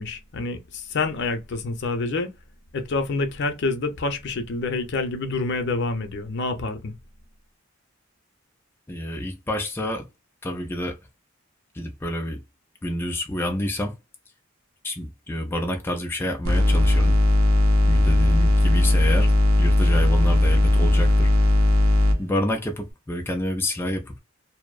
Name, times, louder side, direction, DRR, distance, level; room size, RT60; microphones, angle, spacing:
voice 1, 0.0-2.3 2.7-6.9, left 3 dB, 60° left, 0.6 m, -27 dB
voice 2, 8.9-10.0 10.4-11.0 11.7-12.4 12.8-13.9 14.8-17.2 17.9-19.3 19.6-21.3 22.2-24.2, left 1 dB, 10° left, 0.3 m, -28 dB
sound 1, 16.4-22.2, left 1 dB, 85° right, 0.6 m, -18 dB
2.6 x 2.0 x 2.3 m
head